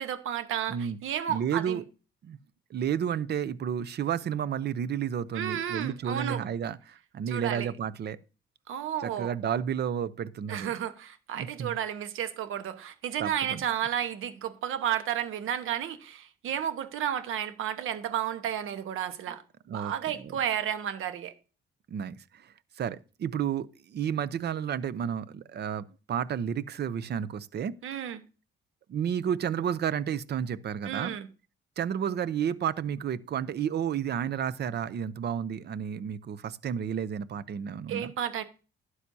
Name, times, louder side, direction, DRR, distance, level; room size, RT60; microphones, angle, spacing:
voice 1, 0.0-1.8 5.3-6.4 7.3-7.7 8.7-9.3 10.5-19.4 19.7-21.3 27.8-28.2 30.9-31.3 37.9-38.4, right 10 dB, 80° right, 1.2 m, -32 dB
voice 2, 1.3-1.8 2.2-2.4 2.7-8.2 9.0-10.7 11.3-11.8 13.2-13.7 18.7-18.8 19.7-20.4 21.9-27.8 28.9-31.1 31.8-38.1, right 8 dB, 55° right, 0.7 m, -31 dB
12.0 x 9.9 x 2.8 m
cardioid pair, 105°, 21 cm